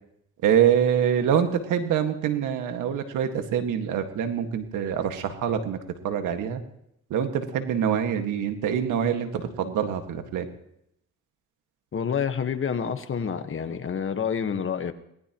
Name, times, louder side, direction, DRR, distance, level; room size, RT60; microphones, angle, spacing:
voice 1, 0.4-5.8 6.0-6.6 7.1-10.5, right 8 dB, 85° right, 7 dB, 1.9 m, -25 dB
voice 2, 11.9-14.9, left 7 dB, 45° left, 9 dB, 1.4 m, -28 dB
24.5 x 19.0 x 3.1 m, 0.76 s
cardioid pair, 90°, 30 cm